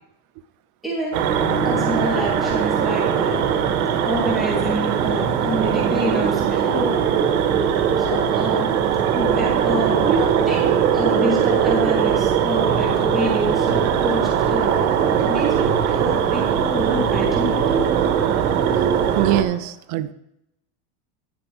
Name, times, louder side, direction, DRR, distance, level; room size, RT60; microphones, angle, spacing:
voice 1, 0.8-1.2 1.6-3.4 4.0-7.0 8.0-8.7 9.1-14.7 15.3-17.8, equal, ahead, -6 dB, 3.2 m, -27 dB
sound 1, 1.1-19.4, right 8 dB, 85° right, 1.7 m, -20 dB
voice 2, 19.2-20.1, right 14 dB, 45° right, 15 dB, 0.6 m, -22 dB
11.5 x 9.1 x 3.4 m, 0.82 s
supercardioid pair, 145°, 43 cm